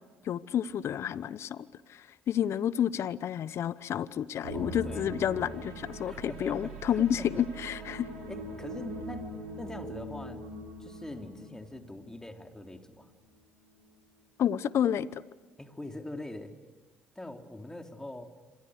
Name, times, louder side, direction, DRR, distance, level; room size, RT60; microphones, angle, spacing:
voice 1, 0.2-8.1 14.4-15.2, left 9 dB, 55° left, 18 dB, 0.9 m, -30 dB
sound 1, 4.4-12.6 12.9-13.2 13.7-13.8, right 2 dB, 90° right, 6.1 m, -42 dB
voice 2, 4.5-5.2 6.1-7.5 8.3-9.3 9.6-10.5 10.8-13.1 15.6-16.5 17.2-18.3, left 1 dB, 10° left, 4 dB, 3.5 m, -43 dB
28.5 x 26.5 x 6.6 m, 1.3 s
hypercardioid pair, 60°, 5 cm